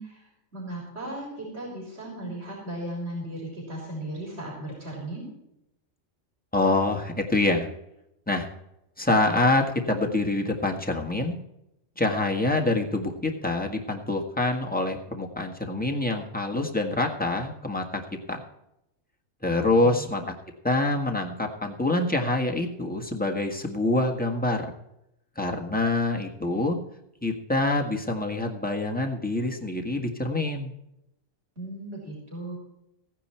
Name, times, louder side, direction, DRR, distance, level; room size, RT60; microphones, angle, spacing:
voice 1, 0.0-5.2 19.6-20.2 31.6-32.6, right 1 dB, 55° right, -3 dB, 4.4 m, -36 dB
voice 2, 6.5-7.7 8.3-8.5 9.0-11.3 12.0-18.0 18.3-18.4 19.4-20.2 20.6-24.7 25.3-26.8 27.2-30.7, left 2 dB, 5° left, 2 dB, 1.6 m, -26 dB
16.0 x 9.7 x 4.5 m, 0.82 s
omnidirectional pair, 1.3 m